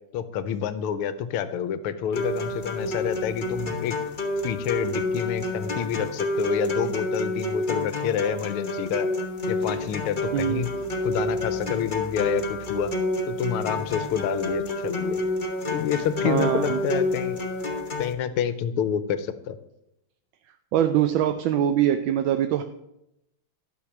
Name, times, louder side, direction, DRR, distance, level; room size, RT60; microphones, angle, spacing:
voice 1, 0.1-3.9 4.4-9.1 9.5-10.7 11.0-12.9 13.3-15.2 15.7-17.4 18.0-19.6, left 8 dB, 85° left, 12 dB, 1.6 m, -28 dB
sound 1, 2.1-18.1, left 1 dB, 40° left, 0.7 m, -29 dB
voice 2, 10.3-10.7 16.2-16.8 20.7-22.6, right 10 dB, 75° right, 8 dB, 1.2 m, -23 dB
11.5 x 4.8 x 7.0 m, 0.85 s
omnidirectional pair, 2.4 m